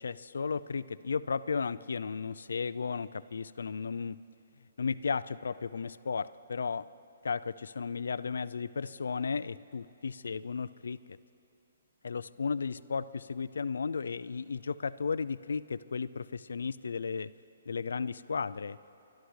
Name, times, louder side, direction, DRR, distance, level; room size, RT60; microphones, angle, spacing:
voice 1, 0.0-4.2 4.8-6.9 7.2-11.2 12.0-17.3 17.7-18.8, left 5 dB, 85° left, 17 dB, 0.3 m, -34 dB
22.0 x 13.0 x 3.2 m, 3.0 s
hypercardioid pair, 155°, 0 cm